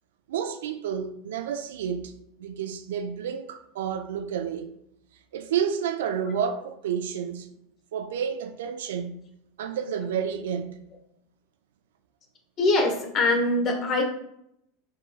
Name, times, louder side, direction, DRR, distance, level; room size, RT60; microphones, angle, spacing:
voice 1, 0.3-2.1 2.4-4.7 5.3-7.5 7.9-9.3 9.6-10.8, right 8 dB, 70° right, 0.3 m, -30 dB
voice 2, 12.6-14.0, left 2 dB, 40° left, 1.1 m, -23 dB
4.6 x 3.8 x 2.3 m
figure-of-eight pair, 80°, 0 cm